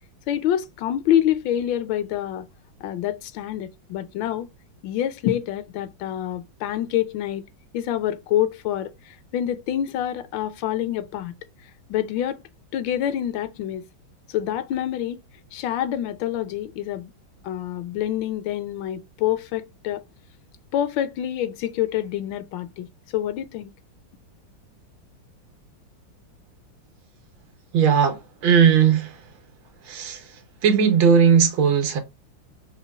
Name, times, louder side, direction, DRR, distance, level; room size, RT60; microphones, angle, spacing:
voice 1, 0.3-2.5 2.8-4.5 4.8-7.4 7.7-11.3 11.9-12.4 12.7-13.8 14.3-15.2 15.5-17.1 17.4-20.0 20.7-22.9 23.1-23.7, left 11 dB, 80° left, 1.3 m, -26 dB
voice 2, 27.7-29.2 29.8-30.3 30.6-32.0, right 7 dB, 80° right, 1.7 m, -18 dB
5.0 x 2.2 x 2.3 m
omnidirectional pair, 2.1 m